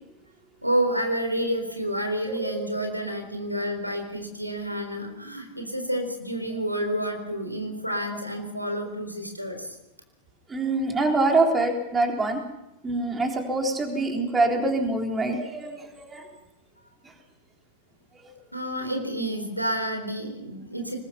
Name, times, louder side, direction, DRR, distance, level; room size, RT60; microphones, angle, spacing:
voice 1, 0.6-9.8 18.5-21.0, right 1 dB, 90° right, 5 dB, 4.0 m, -29 dB
voice 2, 2.3-2.8 10.5-12.4 12.8-16.2, right 2 dB, 15° right, 2 dB, 4.0 m, -25 dB
24.5 x 21.0 x 5.8 m, 0.91 s
figure-of-eight pair, 90°, 0 cm